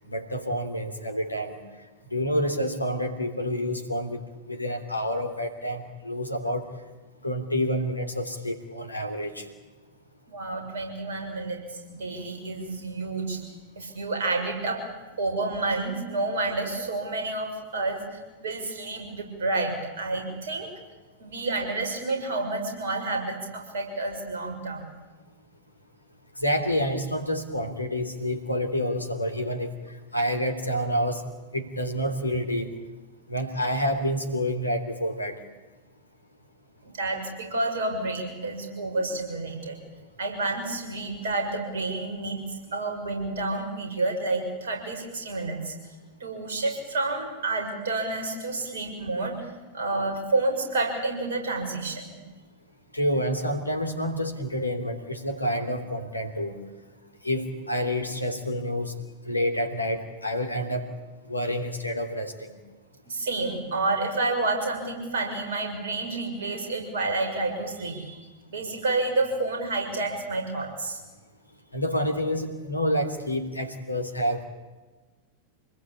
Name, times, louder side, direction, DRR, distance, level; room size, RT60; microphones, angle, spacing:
voice 1, 0.1-1.6 2.1-4.2 4.5-6.6 7.2-9.5 26.4-29.7 30.1-31.2 31.5-32.7 33.3-35.4 52.9-56.6 57.2-58.9 59.2-60.9 61.3-62.6 71.7-74.4, equal, 85° left, 6 dB, 3.2 m, -28 dB
voice 2, 10.3-13.4 13.8-14.9 15.2-20.7 21.2-24.9 36.8-39.8 40.2-45.7 46.2-49.4 49.7-52.1 63.1-68.1 68.5-71.0, right 2 dB, 65° right, 3 dB, 7.0 m, -29 dB
27.0 x 20.0 x 8.8 m, 1.2 s
figure-of-eight pair, 90°, 0 cm